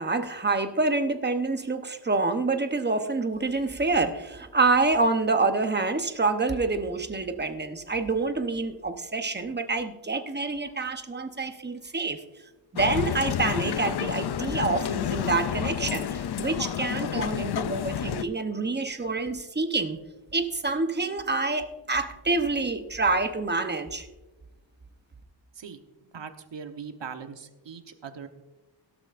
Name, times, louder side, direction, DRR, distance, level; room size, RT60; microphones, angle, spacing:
voice 1, 0.0-12.2 12.7-20.0 20.3-24.1, right 3 dB, 20° right, 7 dB, 0.8 m, -27 dB
Male speech man speaking, 12.7-18.2, left 9 dB, 55° left, 0.5 m, -30 dB
voice 2, 26.1-28.3, right 6 dB, 60° right, 7 dB, 1.1 m, -40 dB
17.0 x 12.0 x 2.5 m, 1.1 s
wide cardioid pair, 140°, 50 cm